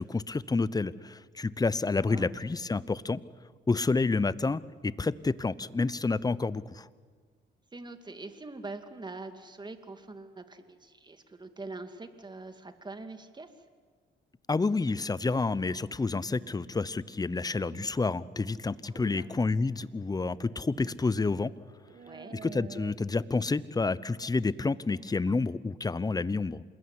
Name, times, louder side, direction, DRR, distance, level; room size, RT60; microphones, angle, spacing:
voice 1, 0.0-3.2 3.7-6.9 14.5-21.5 22.4-26.6, left 3 dB, 20° left, 18 dB, 0.8 m, -29 dB
voice 2, 7.7-13.5 18.8-19.3 22.0-22.4, right 3 dB, 20° right, 8 dB, 2.5 m, -44 dB
sound 1, 14.9-15.6 16.3-16.7 17.3-17.9 19.1-19.3 20.4-21.0 21.3-21.4 21.9-22.9, right 6 dB, 45° right, 1.7 m, -49 dB
27.0 x 21.0 x 9.7 m, 1.5 s
cardioid pair, 90°, 20 cm